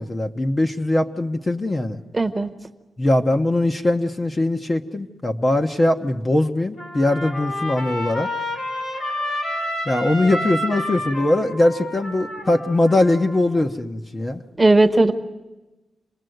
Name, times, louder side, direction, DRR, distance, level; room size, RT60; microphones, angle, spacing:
voice 1, 0.0-2.0 3.0-8.3 9.9-14.4, left 1 dB, 20° left, 5 dB, 0.8 m, -21 dB
voice 2, 2.1-2.5 14.6-15.1, right 2 dB, 15° right, 8 dB, 1.0 m, -16 dB
Trumpet, 6.8-13.4, left 1 dB, 65° left, 4.1 m, -29 dB
28.0 x 19.5 x 7.8 m, 1.1 s
wide cardioid pair, 170°, 0 cm